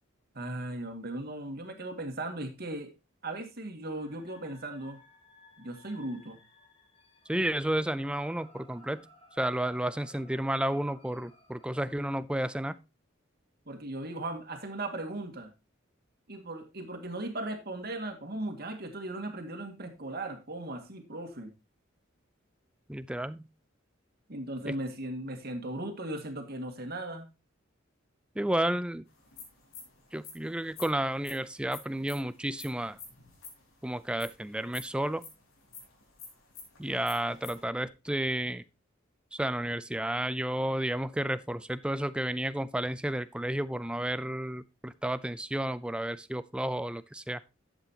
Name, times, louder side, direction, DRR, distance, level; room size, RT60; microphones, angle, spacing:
voice 1, 0.3-2.9 3.2-5.0 5.6-6.4 13.7-15.5 16.3-21.5 24.3-27.3, right 1 dB, 50° right, 6 dB, 2.0 m, -37 dB
sound 1, 3.9-12.1, left 1 dB, 30° left, 2.1 m, -58 dB
voice 2, 7.3-9.1 9.4-12.8 22.9-23.4 28.4-29.0 30.1-33.0 33.8-35.2 36.8-38.6 39.3-47.4, right 1 dB, 5° right, 15 dB, 0.4 m, -32 dB
sound 2, 29.1-37.6, left 5 dB, 90° left, 4.4 m, -49 dB
12.0 x 8.2 x 2.9 m, 0.26 s
head